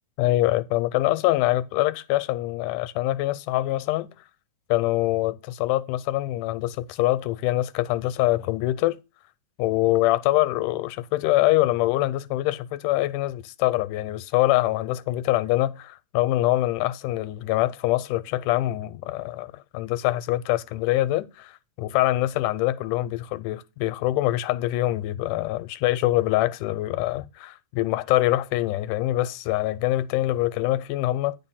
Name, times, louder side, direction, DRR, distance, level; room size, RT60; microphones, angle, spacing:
voice 1, 0.2-4.1 4.7-9.0 9.6-31.4, left 16 dB, 85° left, 2.1 m, -24 dB
9.8 x 4.7 x 5.6 m
omnidirectional pair, 3.6 m